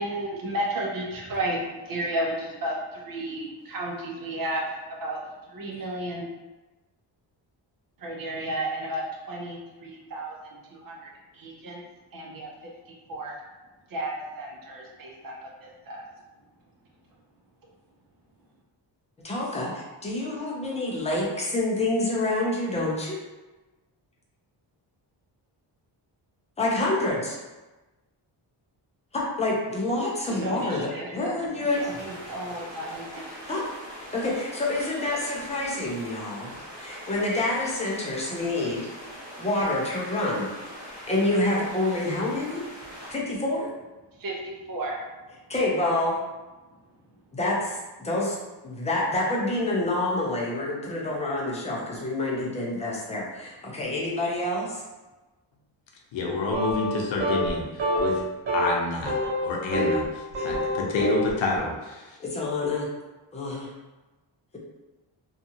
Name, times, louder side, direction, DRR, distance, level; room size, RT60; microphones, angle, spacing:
voice 1, 0.0-5.2 5.5-6.3 8.0-11.8 12.1-12.5 12.9-13.4 13.9-16.0 30.3-31.3 31.8-33.4 44.2-45.0, right 1 dB, 50° right, -2 dB, 0.6 m, -33 dB
voice 2, 19.2-23.2 26.6-27.4 29.1-31.9 33.5-33.6 34.1-36.5 36.8-38.9 39.4-40.5 40.8-42.6 43.1-43.7 45.5-46.2 47.3-48.4 48.6-54.8 60.4-60.5 62.2-62.9 63.3-63.7, left 2 dB, 15° left, -4 dB, 0.5 m, -27 dB
sound 1, 31.7-43.1, equal, 10° right, 0.9 m, -42 dB
voice 3, 56.1-58.2 58.5-62.2, left 3 dB, 85° left, -1 dB, 0.7 m, -28 dB
sound 2, 56.5-57.0 57.2-57.5 57.8-58.2 58.5-58.7 59.1-60.0 60.3-61.3, equal, 80° right, 0.8 m, -26 dB
2.7 x 2.4 x 2.7 m, 1.1 s
wide cardioid pair, 165°, 44 cm